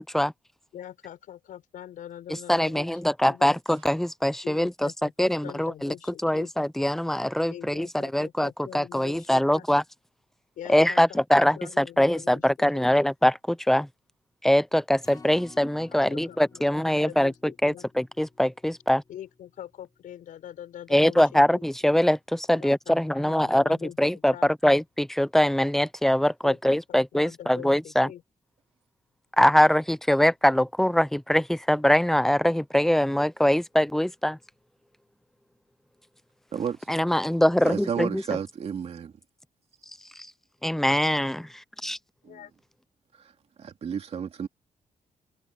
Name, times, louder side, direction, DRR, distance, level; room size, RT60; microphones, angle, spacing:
voice 1, 0.7-2.9 3.2-3.6 4.4-6.5 7.5-9.7 10.5-12.5 12.7-13.1 15.9-17.8 19.1-21.7 22.5-24.5 26.4-28.2 42.2-42.5, left 11 dB, 85° left, 6.7 m, -44 dB
voice 2, 2.5-4.9 5.2-5.9 6.2-9.8 10.7-13.9 14.4-19.0 20.9-24.3 24.6-28.1 29.4-34.4 36.9-38.2 40.6-42.0, left 1 dB, 5° left, 0.5 m, -23 dB
Acoustic guitar, 15.0-21.3 21.7-21.8 22.2-22.3, left 4 dB, 25° left, 7.0 m, -54 dB
voice 3, 37.6-39.1 42.2-42.4 43.2-43.3 43.6-44.5, right 7 dB, 50° right, 2.8 m, -32 dB
cardioid pair, 140°, 13 cm